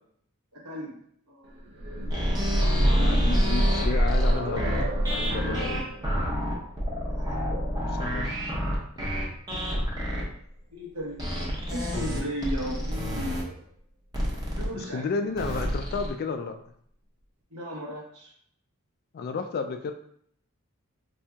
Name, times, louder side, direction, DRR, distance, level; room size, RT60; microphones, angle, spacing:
voice 1, 0.5-1.0 1.3-1.6 2.3-3.9 7.0-7.4 10.1-10.4 10.7-11.2 11.7-13.7 14.5-15.2 17.5-18.3, equal, 90° right, -3 dB, 1.1 m, -37 dB
sound 1, 1.6-9.4 10.5-10.6 11.0-11.1, equal, 50° right, 0.6 m, -28 dB
sound 2, 2.1-10.2 11.2-13.4 14.1-14.7 15.4-16.1, equal, 20° right, 0.8 m, -28 dB
voice 2, 3.0-4.8 5.1-5.8 8.0-8.3 14.8-16.6 19.1-19.9, left 4 dB, 45° left, 7 dB, 0.3 m, -32 dB
4.3 x 2.7 x 2.3 m, 0.66 s
head